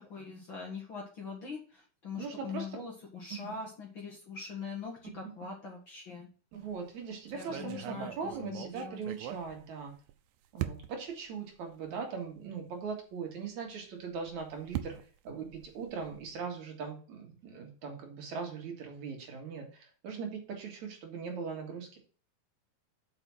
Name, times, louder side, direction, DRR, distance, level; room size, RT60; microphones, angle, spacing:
voice 1, 0.0-1.6 2.0-6.3 7.3-8.1 8.4-9.0, left 5 dB, 45° left, -2 dB, 2.0 m, -42 dB
voice 2, 2.2-2.8 3.3-3.6 5.2-5.3 6.5-9.9 10.5-15.0 15.2-22.0, right 5 dB, 60° right, 2 dB, 2.8 m, -40 dB
sound 1, 6.5-6.8 7.4-10.1 10.6-11.1 11.9-12.0 12.3-12.4 14.0-16.4, right 12 dB, 85° right, 2.4 m, -41 dB
6.8 x 5.9 x 5.9 m, 0.40 s
omnidirectional pair, 4.0 m